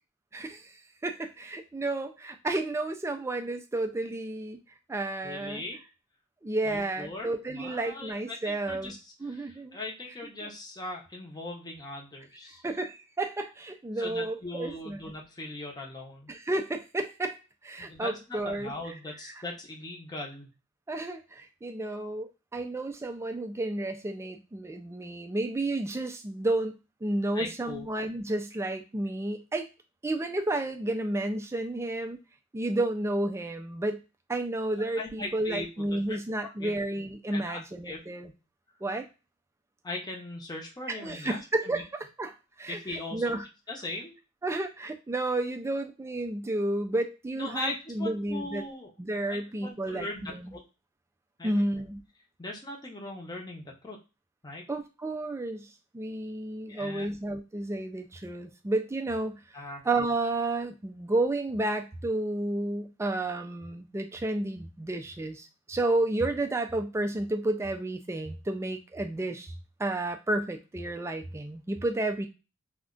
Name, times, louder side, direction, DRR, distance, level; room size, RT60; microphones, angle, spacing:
voice 1, 0.3-0.7 1.0-4.6 4.9-5.6 6.4-8.9 9.2-9.8 10.4-10.5 12.6-15.0 16.3-17.4 17.6-18.7 19.2-19.3 20.9-29.7 30.0-32.2 32.5-34.0 34.3-38.3 38.8-39.1 40.9-43.5 44.4-48.7 49.0-50.6 51.4-52.0 54.7-55.7 55.9-59.4 59.8-69.5 69.8-72.3, right 2 dB, 10° right, 5 dB, 0.3 m, -31 dB
voice 2, 5.2-5.8 6.6-9.0 9.3-12.6 13.9-16.3 17.8-20.5 27.3-27.9 35.0-36.8 37.3-38.0 39.8-41.8 42.7-43.2 43.7-44.1 47.4-48.9 49.3-50.6 51.4-51.6 52.4-54.0 54.4-54.6 56.7-57.1 59.5-59.8, left 2 dB, 20° left, -1 dB, 0.7 m, -39 dB
2.4 x 2.1 x 3.7 m, 0.29 s
head